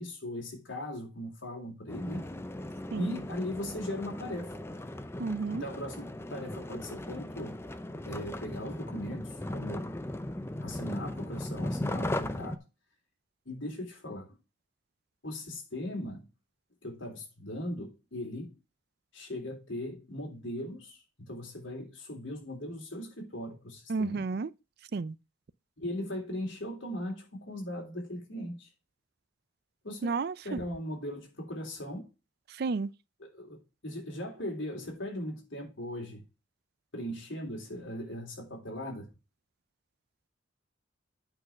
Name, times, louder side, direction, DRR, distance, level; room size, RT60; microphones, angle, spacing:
voice 1, 0.0-2.3 2.9-4.5 5.5-7.5 8.0-9.9 10.6-12.6 13.4-14.4 15.2-16.3 16.8-18.5 19.1-24.2 25.8-28.7 29.8-30.2 30.4-32.1 33.2-36.2 36.9-39.1, left 1 dB, 75° left, 3.4 m, -39 dB
sound 1, 1.9-12.6, left 1 dB, 15° left, 0.5 m, -37 dB
voice 2, 5.2-5.6 23.9-24.5 24.9-25.2 30.0-30.6 32.5-32.9, right 4 dB, 55° right, 0.4 m, -32 dB
8.8 x 4.1 x 5.8 m
head